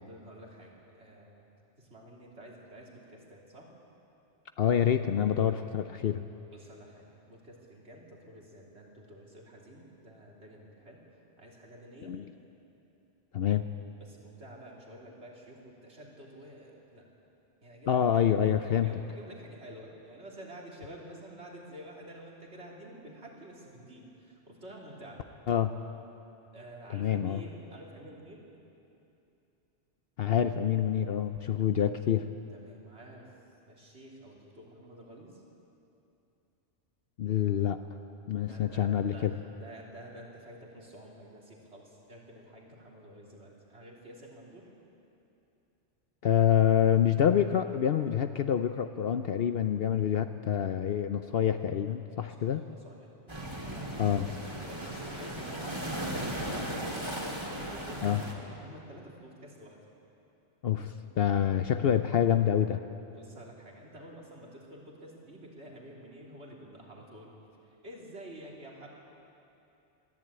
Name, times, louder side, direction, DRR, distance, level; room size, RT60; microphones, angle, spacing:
voice 1, 0.0-1.5 1.8-3.7 6.5-11.0 11.4-12.2 14.0-17.1 17.6-18.2 18.6-25.2 26.5-28.4 32.5-33.3 33.7-35.4 38.4-44.7 52.2-56.7 57.4-59.9 63.1-67.4 67.6-68.9, right 1 dB, 70° right, -2 dB, 3.5 m, -50 dB
voice 2, 4.6-6.2 12.0-12.3 13.3-13.6 17.9-18.9 25.5-25.7 26.9-27.4 30.2-32.3 37.2-37.8 38.3-39.3 46.2-52.6 54.0-54.3 58.0-58.2 60.6-62.8, left 9 dB, 60° left, 8 dB, 0.8 m, -27 dB
sound 1, 53.3-58.3, right 1 dB, 25° right, 2.4 m, -36 dB
21.5 x 14.5 x 8.7 m, 2.8 s
omnidirectional pair, 1.2 m